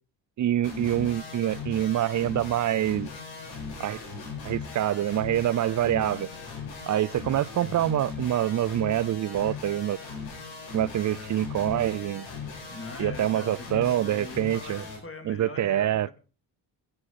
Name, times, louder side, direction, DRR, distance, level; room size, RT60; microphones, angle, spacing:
voice 1, 0.4-3.1 3.8-4.0 4.4-6.3 6.9-10.0 10.7-12.3 13.0-14.8 15.2-16.1, right 12 dB, 40° right, 0.5 m, -26 dB
sound 1, 0.6-15.0, left 5 dB, 80° left, 4.8 m, -38 dB
voice 2, 5.9-6.2 7.2-7.5 12.6-16.1, left 3 dB, 30° left, 3.0 m, -42 dB
16.5 x 8.7 x 4.2 m
supercardioid pair, 65°, 45 cm